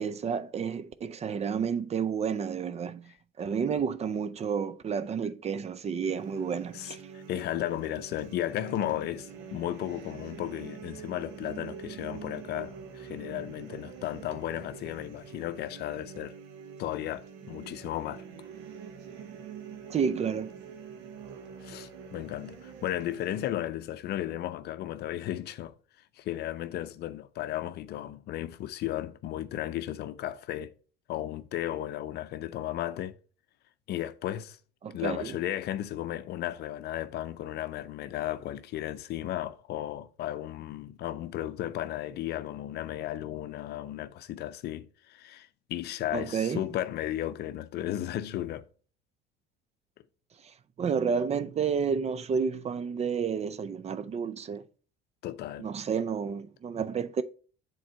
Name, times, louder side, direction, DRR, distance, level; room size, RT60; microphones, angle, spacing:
voice 1, 0.0-3.1 3.4-7.0 19.9-20.5 34.8-35.3 46.1-46.6 50.8-54.6 55.6-57.2, right 6 dB, 35° right, 0.5 m, -30 dB
sound 1, 6.0-23.5, right 7 dB, 75° right, 1.2 m, -45 dB
voice 2, 6.7-16.3 16.8-18.2 21.6-25.7 26.2-30.7 31.1-33.2 33.9-34.6 34.9-48.6 55.2-55.7, left 13 dB, 60° left, 0.6 m, -34 dB
7.6 x 3.9 x 4.3 m
supercardioid pair, 85°, 19 cm